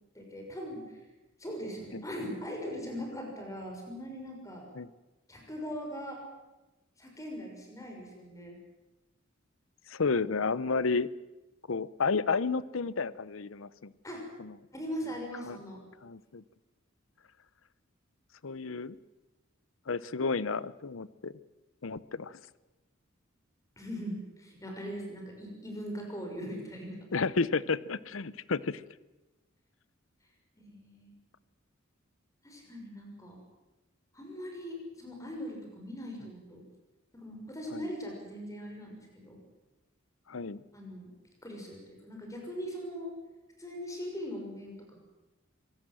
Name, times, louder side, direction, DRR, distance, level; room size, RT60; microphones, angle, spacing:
voice 1, 0.1-1.0 1.4-4.6 5.3-6.2 7.0-8.6 14.0-14.2 14.7-15.8 23.8-27.0 30.6-31.1 32.4-33.4 34.1-36.6 37.1-39.4 40.7-41.1 41.4-43.1 43.6-45.0, equal, 15° left, 1 dB, 6.2 m, -40 dB
voice 2, 9.9-11.1 11.7-13.9 14.4-14.5 15.5-15.6 16.0-16.4 18.4-19.0 19.9-21.3 21.8-22.4 27.1-28.8 37.7-37.9 40.3-40.6, left 4 dB, 75° left, 18 dB, 0.7 m, -31 dB
25.5 x 18.0 x 7.7 m, 1.1 s
head